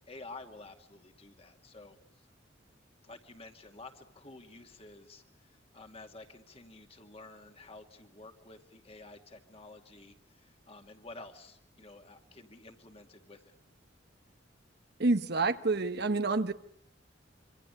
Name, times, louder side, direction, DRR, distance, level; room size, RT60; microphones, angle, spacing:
voice 1, 0.0-2.0 3.0-13.6, left 2 dB, 30° left, 2.5 m, -51 dB
voice 2, 15.0-16.5, right 3 dB, 55° right, 1.1 m, -28 dB
26.5 x 25.5 x 8.2 m
head